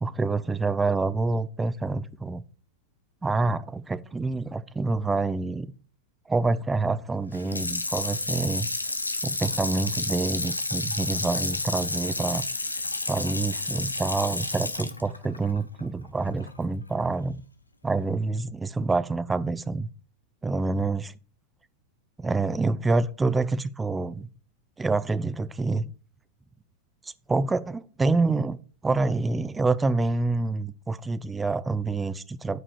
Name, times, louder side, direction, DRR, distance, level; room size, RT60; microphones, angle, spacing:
voice 1, 0.0-2.4 3.2-5.7 6.3-8.7 9.2-12.4 13.1-17.4 17.8-19.9 20.4-21.1 22.2-24.3 24.8-25.9 27.3-32.6, right 3 dB, 10° right, 0.5 m, -27 dB
Water tap faucet / Sink (filling or washing), 7.3-16.5 16.9-17.0, left 2 dB, 85° left, 0.7 m, -31 dB
9.8 x 4.9 x 5.0 m
figure-of-eight pair, 90°, 0 cm